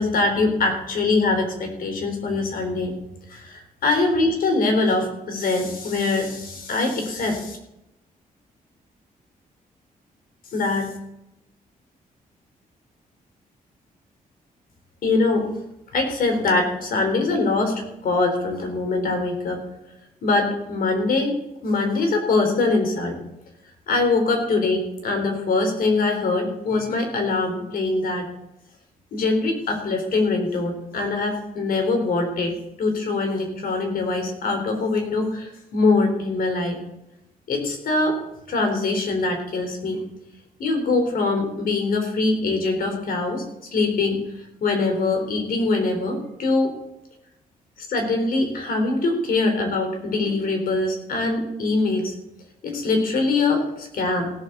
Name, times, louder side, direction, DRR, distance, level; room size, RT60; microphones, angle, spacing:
voice 1, 0.0-2.9 3.3-7.3 10.5-10.9 15.0-15.5 15.9-19.6 20.2-21.4 21.6-23.2 23.9-28.3 29.1-36.8 37.5-38.2 38.5-40.0 40.6-43.4 43.7-44.2 44.6-46.7 47.8-52.1 52.6-54.3, left 3 dB, 75° left, 4 dB, 3.9 m, -23 dB
16.5 x 7.4 x 6.8 m, 0.86 s
cardioid pair, 110°, 15 cm